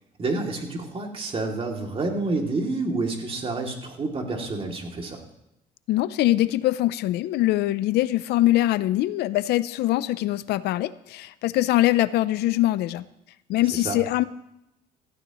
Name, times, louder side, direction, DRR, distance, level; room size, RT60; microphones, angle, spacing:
voice 1, 0.2-5.2 13.7-14.0, right 3 dB, 35° right, 2 dB, 2.6 m, -29 dB
voice 2, 5.9-13.0 13.5-14.2, left 15 dB, 75° left, 16 dB, 0.5 m, -23 dB
17.0 x 15.0 x 3.0 m, 0.85 s
cardioid pair, 110°, 17 cm